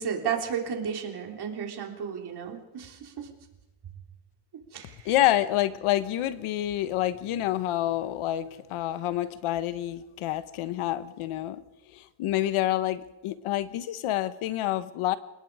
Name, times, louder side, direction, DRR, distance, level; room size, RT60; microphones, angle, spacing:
voice 1, 0.0-3.3 4.7-5.4, right 7 dB, 50° right, 2 dB, 3.8 m, -33 dB
voice 2, 5.0-11.6 11.9-15.2, left 13 dB, 80° left, 13 dB, 1.3 m, -28 dB
29.5 x 18.0 x 4.9 m, 1.0 s
cardioid pair, 135°, 49 cm